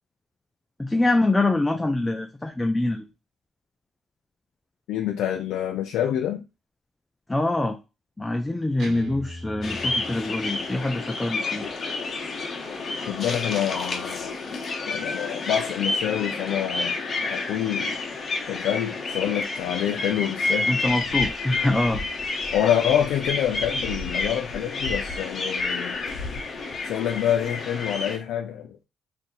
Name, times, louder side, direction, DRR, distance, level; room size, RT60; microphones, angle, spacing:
voice 1, 0.8-3.1 7.3-7.8 8.2-11.7 20.7-22.0 22.3-22.4, left 2 dB, 15° left, 0.4 m, -24 dB
voice 2, 4.9-6.4 13.1-14.3 14.9-17.0 17.2-18.0 18.5-20.8 22.5-26.0 26.8-28.8, left 10 dB, 85° left, 0.4 m, -26 dB
Guitar, 8.8-10.8, equal, 65° right, 1.1 m, -41 dB
sound 1, 9.6-28.2, left 3 dB, 50° left, 0.8 m, -29 dB
2.6 x 2.6 x 3.9 m
cardioid pair, 90°, 0 cm